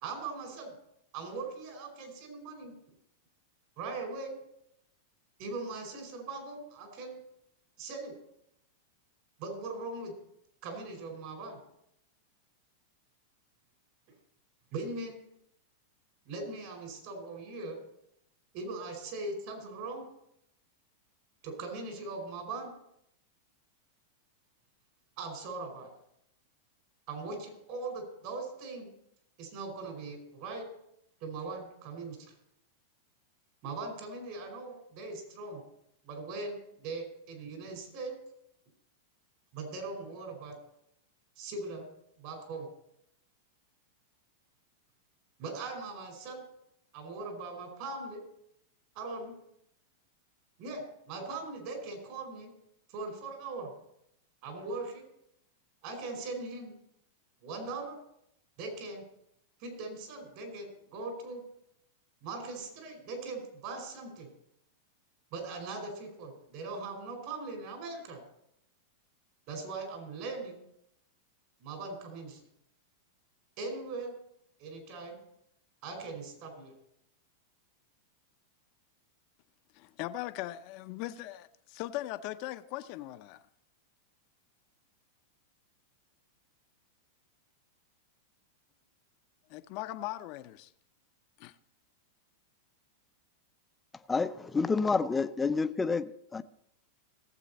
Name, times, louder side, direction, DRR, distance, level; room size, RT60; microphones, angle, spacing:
voice 1, 0.0-0.8 1.1-2.7 3.8-4.4 5.4-7.2 7.8-8.1 9.4-10.1 10.6-11.6 14.7-15.2 16.2-17.8 18.5-20.0 21.4-22.7 25.2-25.9 27.1-28.9 29.4-30.7 31.2-32.3 33.6-35.6 36.0-38.2 39.5-40.5 41.4-41.9 42.2-42.7 45.4-46.4 46.9-48.2 48.9-49.3 50.6-52.5 52.9-53.7 54.4-55.0 55.8-56.7 57.4-58.0 58.6-59.0 59.6-61.4 62.2-64.3 65.3-68.2 69.5-70.6 71.6-72.4 73.6-74.1 74.6-75.2 75.8-76.8, right 3 dB, 55° right, 4.8 m, -40 dB
voice 2, 79.7-83.4 89.5-90.7 91.4-91.6, left 15 dB, 50° left, 0.7 m, -39 dB
voice 3, 94.1-96.0 96.3-96.4, left 4 dB, 15° left, 0.6 m, -28 dB
17.5 x 7.8 x 4.2 m
hypercardioid pair, 120°, 0 cm